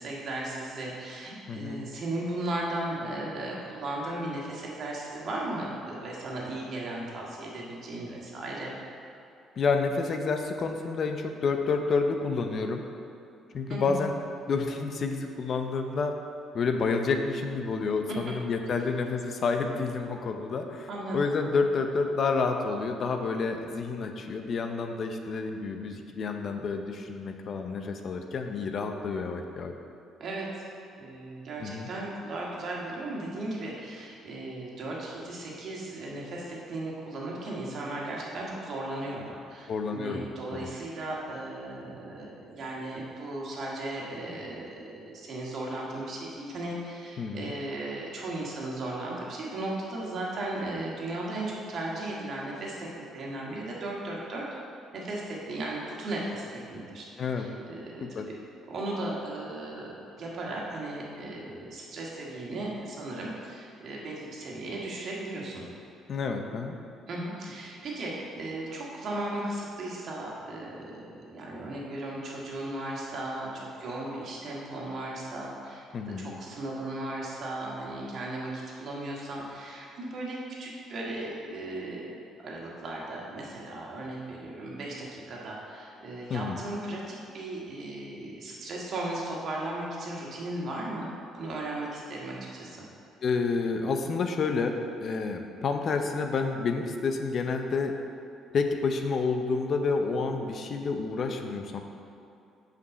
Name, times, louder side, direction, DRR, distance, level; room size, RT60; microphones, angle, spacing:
voice 1, 0.0-8.8 13.7-14.0 20.9-21.2 30.2-30.6 31.0-54.5 54.9-57.1 57.3-58.4 58.7-65.6 67.1-91.1 91.3-92.8, right 2 dB, 55° right, -4 dB, 1.8 m, -36 dB
voice 2, 1.5-1.8 9.6-12.8 13.5-14.1 14.5-16.1 16.5-20.9 21.1-29.7 31.6-31.9 39.7-40.2 40.5-40.7 47.2-47.5 57.2-57.5 58.0-58.3 66.1-66.8 75.9-76.3 86.3-86.6 93.2-94.7 95.0-97.9 98.5-101.8, left 4 dB, 50° left, 5 dB, 0.6 m, -29 dB
5.4 x 5.2 x 6.6 m, 2.6 s
cardioid pair, 100°, 0 cm